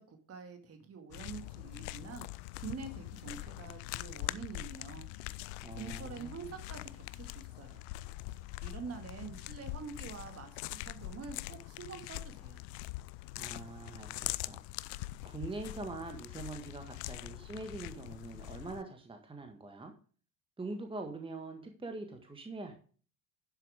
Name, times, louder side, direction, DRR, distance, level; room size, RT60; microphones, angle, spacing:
voice 1, 0.0-2.3 2.6-5.1 5.8-7.9 8.3-12.6, right 6 dB, 30° right, 6 dB, 2.1 m, -46 dB
sound 1, 1.1-18.8, left 18 dB, 50° left, 0.5 m, -43 dB
voice 2, 5.6-6.5 13.4-14.6 14.9-19.9 20.6-22.7, right 3 dB, 10° right, 4 dB, 1.7 m, -44 dB
11.5 x 7.1 x 3.6 m, 0.40 s
figure-of-eight pair, 65°, 44 cm